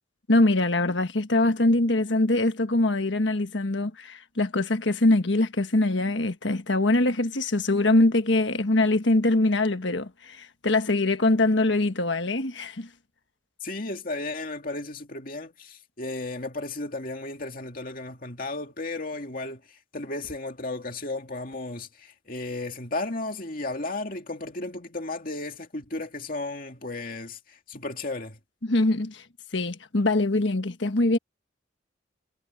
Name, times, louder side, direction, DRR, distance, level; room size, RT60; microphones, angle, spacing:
voice 1, 0.3-12.9 28.6-29.2 29.5-31.2, left 2 dB, 70° left, 1.5 m, -23 dB
voice 2, 13.6-28.4, left 2 dB, 45° left, 2.4 m, -34 dB
head